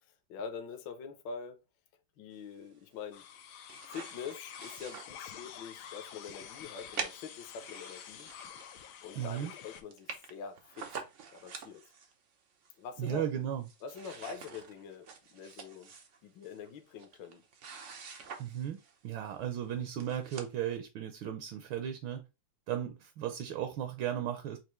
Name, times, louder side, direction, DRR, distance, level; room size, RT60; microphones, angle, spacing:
voice 1, 0.3-1.6 2.2-3.2 3.9-8.3 9.0-10.8 11.3-11.8 12.8-13.3 13.8-15.9 16.2-17.4, left 6 dB, 70° left, 1.3 m, -44 dB
sound 1, 3.1-9.8, left 9 dB, 85° left, 0.9 m, -48 dB
sound 2, 3.3-5.7 6.1-6.2 6.9-9.0 9.4-9.5 9.6-9.7 9.9-12.1 12.6-13.3 13.6-19.0 19.6-19.7 20.0-20.5, right 5 dB, 90° right, 0.6 m, -46 dB
voice 2, 9.1-9.5 13.0-13.6 18.4-18.8 19.0-22.2 22.7-24.6, right 10 dB, 75° right, 1.3 m, -35 dB
6.0 x 2.5 x 3.0 m
omnidirectional pair, 2.4 m